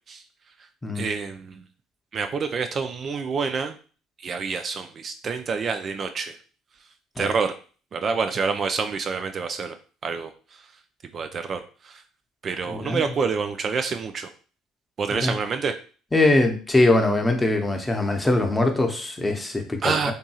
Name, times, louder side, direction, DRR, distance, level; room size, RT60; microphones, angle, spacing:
voice 1, 0.9-1.6 2.1-3.8 4.2-6.4 7.2-7.6 7.9-9.7 10.0-10.6 11.1-12.0 12.4-14.3 15.0-15.7 19.8-20.1, right 5 dB, 45° right, 7 dB, 0.3 m, -27 dB
voice 2, 12.7-13.0 15.1-15.3 16.1-20.1, left 2 dB, 15° left, 4 dB, 0.7 m, -22 dB
2.7 x 2.6 x 2.3 m, 0.38 s
hypercardioid pair, 60°, 0 cm